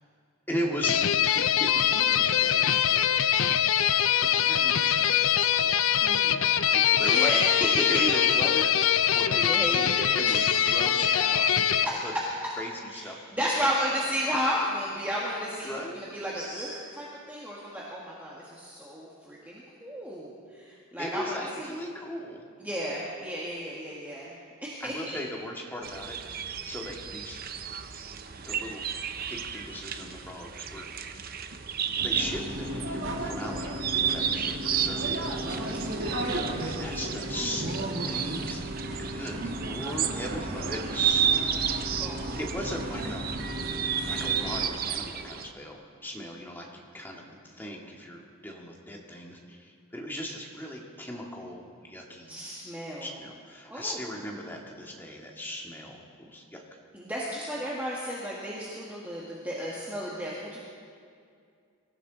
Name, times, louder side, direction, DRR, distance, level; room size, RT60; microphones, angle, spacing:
voice 1, 0.5-3.2 4.2-7.4 7.9-8.7 9.1-11.5 11.8-12.1 12.6-13.2 15.6-16.0 21.0-22.4 24.8-27.4 28.4-28.8 29.3-31.3 31.9-36.1 36.6-37.7 38.1-38.6 39.0-41.2 41.5-43.3 44.1-52.4 53.0-56.6, equal, 10° left, -1 dB, 1.9 m, -38 dB
sound 1, 0.8-11.8, left 9 dB, 70° left, 0.5 m, -23 dB
voice 2, 6.0-6.4 7.0-8.1 9.3-10.0 10.2-11.5 11.8-12.2 12.9-21.7 22.6-24.4 24.6-24.9 35.9-36.1 39.8-42.4 52.3-53.1 53.7-54.0 56.9-60.6, equal, 10° right, -6 dB, 1.7 m, -33 dB
sound 2, 25.8-45.5, right 8 dB, 45° right, 0.7 m, -32 dB
sound 3, 32.0-44.7, right 1 dB, 60° right, 2.0 m, -34 dB
24.0 x 15.0 x 4.0 m, 2.3 s
head